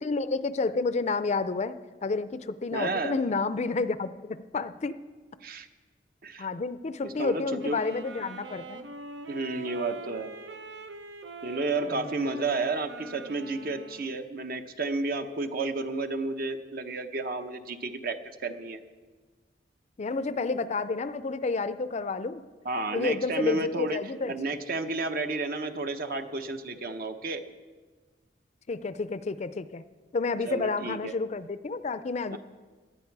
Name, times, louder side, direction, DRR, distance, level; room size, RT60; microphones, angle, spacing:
voice 1, 0.0-5.0 6.4-8.9 11.9-12.0 20.0-22.4 22.9-24.5 28.7-29.8 30.1-32.4, left 3 dB, 40° left, 13 dB, 0.5 m, -30 dB
voice 2, 2.7-3.2 5.4-5.7 6.2-6.5 7.0-7.8 9.3-10.3 11.4-18.8 22.6-24.0 24.3-27.4 30.4-31.1 32.3-32.4, right 3 dB, 55° right, 7 dB, 0.9 m, -31 dB
sound 1, 7.6-14.1, right 3 dB, 85° right, 0.8 m, -43 dB
18.0 x 11.0 x 4.7 m, 1.4 s
head